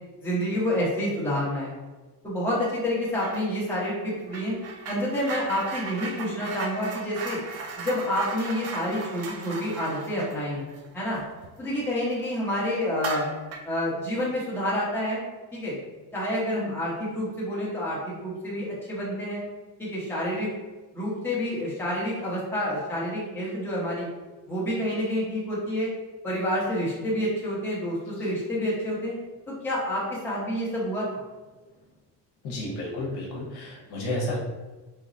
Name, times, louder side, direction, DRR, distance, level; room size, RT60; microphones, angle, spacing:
voice 1, 0.2-1.7 2.2-4.6 4.9-7.4 7.8-10.6 10.9-11.2 11.6-13.3 13.6-15.2 15.5-15.8 16.1-19.4 19.8-20.5 20.9-24.1 24.5-25.9 26.2-29.1 29.5-31.2, equal, 5° left, -8 dB, 1.1 m, -28 dB
sound 1, 3.1-3.5 3.7-11.9 12.3-12.4 12.9-13.8, right 4 dB, 40° right, 0.4 m, -37 dB
voice 2, 32.4-34.4, left 1 dB, 65° left, -2 dB, 1.0 m, -32 dB
3.7 x 3.1 x 2.6 m, 1.2 s
cardioid pair, 150°, 41 cm